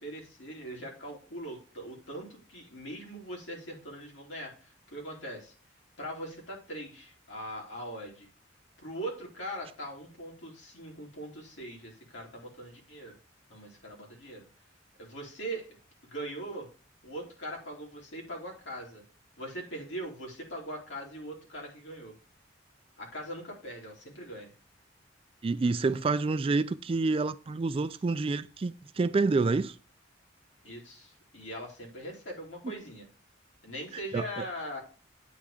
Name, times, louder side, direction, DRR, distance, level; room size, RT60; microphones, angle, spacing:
voice 1, 0.0-5.5 6.0-8.3 8.8-13.2 13.5-14.4 15.0-15.8 16.0-16.7 17.0-19.0 19.4-22.1 23.0-24.5 30.6-33.1 33.6-34.8, right 1 dB, 75° left, 2.9 m, -41 dB
voice 2, 25.4-29.7 34.1-34.2, right 3 dB, 30° right, 0.3 m, -28 dB
8.5 x 3.5 x 5.0 m
head